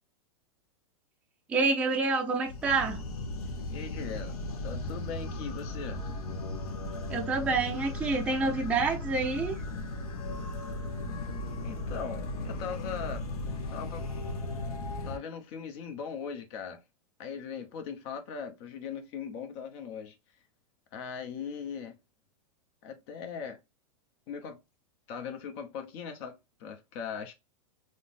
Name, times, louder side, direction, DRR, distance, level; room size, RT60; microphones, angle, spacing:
voice 1, 1.5-3.0 7.1-9.6, right 4 dB, 5° right, 0.4 m, -28 dB
sound 1, 2.5-15.2, left 2 dB, 85° left, 0.9 m, -36 dB
voice 2, 3.7-6.0 11.6-13.3 13.7-14.0 15.0-16.8 17.2-20.2 20.9-22.0 22.8-23.6 24.3-24.6 25.1-27.3, left 6 dB, 45° left, 0.8 m, -39 dB
3.7 x 2.1 x 2.5 m
supercardioid pair, 140°, 19 cm